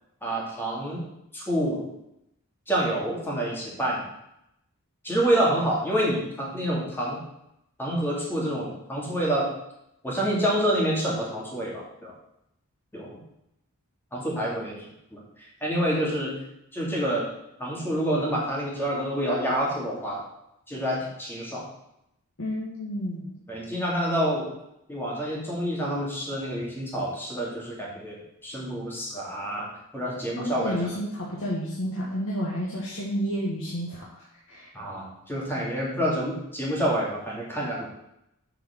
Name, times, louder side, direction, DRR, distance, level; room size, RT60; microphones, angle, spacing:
voice 1, 0.2-1.0 1.3-1.9 2.7-4.0 5.0-7.2 7.8-9.5 10.0-12.1 12.9-13.2 14.1-14.8 15.1-16.3 16.7-17.3 17.6-20.2 20.7-21.7 23.5-24.5 24.9-30.8 34.7-37.9, right 1 dB, 10° left, -4 dB, 2.1 m, -28 dB
voice 2, 22.4-23.3 30.4-34.7, equal, 60° left, -4 dB, 1.4 m, -31 dB
6.8 x 4.8 x 6.2 m, 0.82 s
head